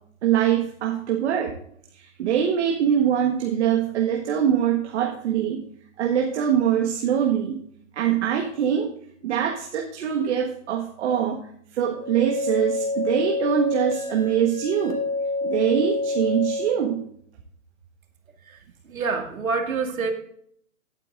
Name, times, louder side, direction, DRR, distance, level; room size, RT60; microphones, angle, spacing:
voice 1, 0.2-1.5 1.9-5.6 6.0-7.6 7.9-8.9 9.2-11.4 11.7-15.0 15.4-17.0, right 9 dB, 55° right, 1 dB, 1.6 m, -23 dB
sound 1, 11.9-16.9, left 2 dB, 85° left, 3.0 m, -28 dB
voice 2, 18.9-20.1, right 4 dB, 90° right, 4 dB, 2.2 m, -26 dB
16.5 x 8.9 x 2.5 m, 0.65 s
hypercardioid pair, 140°, 40 cm